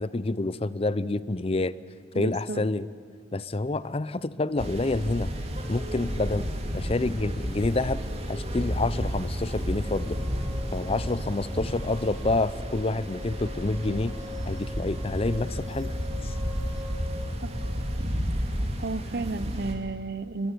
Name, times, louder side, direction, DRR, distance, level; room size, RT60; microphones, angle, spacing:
voice 1, 0.0-1.8 2.1-2.9 3.3-5.3 5.7-6.5 6.7-8.0 8.3-10.2 10.7-14.2 14.4-15.9 16.2-16.4, left 2 dB, 30° left, 17 dB, 0.6 m, -28 dB
voice 2, 2.1-2.6 17.4-17.5 18.8-20.5, right 3 dB, 60° right, 14 dB, 1.0 m, -32 dB
sound 1, 4.6-19.7, equal, 35° right, 2.6 m, -32 dB
sound 2, 9.8-18.6, left 3 dB, 5° right, 2.5 m, -44 dB
22.0 x 21.0 x 9.2 m, 2.1 s
head